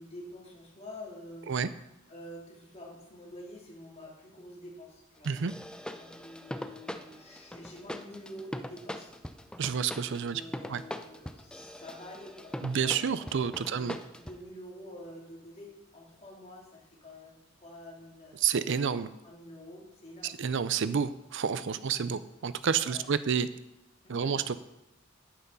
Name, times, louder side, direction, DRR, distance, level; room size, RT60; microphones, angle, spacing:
voice 1, 0.0-1.5 2.1-5.3 6.0-9.1 10.1-12.9 13.7-13.9 14.2-18.4 19.2-20.3 21.7-22.2 22.8-23.1 24.0-24.3, left 1 dB, 30° left, -2 dB, 2.9 m, -47 dB
sound 1, 5.2-14.4, left 1 dB, 5° left, 0.5 m, -42 dB
voice 2, 9.6-10.4 10.7-10.8 12.6-14.0 18.4-19.1 20.2-23.5 24.1-24.6, right 7 dB, 60° right, 14 dB, 0.5 m, -29 dB
10.5 x 9.5 x 5.5 m, 0.89 s
head